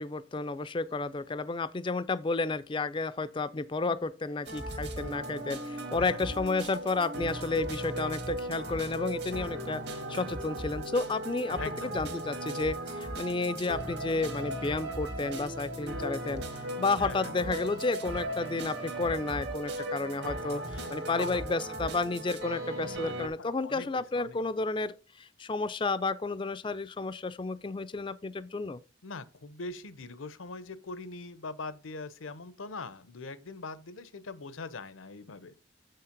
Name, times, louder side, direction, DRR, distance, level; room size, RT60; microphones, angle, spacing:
voice 1, 0.0-28.8, left 3 dB, 25° left, 0.4 m, -32 dB
sound 1, 4.5-23.3, right 1 dB, 55° right, 1.7 m, -37 dB
voice 2, 6.0-6.4 11.6-11.9 17.0-17.3 20.7-21.5 23.4-24.4 29.0-35.5, left 3 dB, 80° left, 0.8 m, -42 dB
7.3 x 5.6 x 5.1 m
head